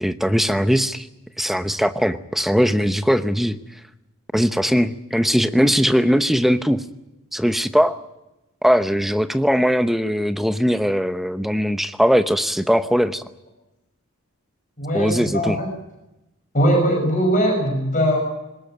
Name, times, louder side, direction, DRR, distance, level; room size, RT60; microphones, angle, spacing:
voice 1, 0.0-1.1 1.4-3.6 4.3-6.8 7.3-8.0 8.6-13.2 14.9-15.6, equal, ahead, 11 dB, 0.8 m, -20 dB
voice 2, 14.8-15.7 16.5-18.2, equal, 35° left, 1 dB, 6.2 m, -20 dB
21.0 x 19.0 x 9.4 m, 0.95 s
head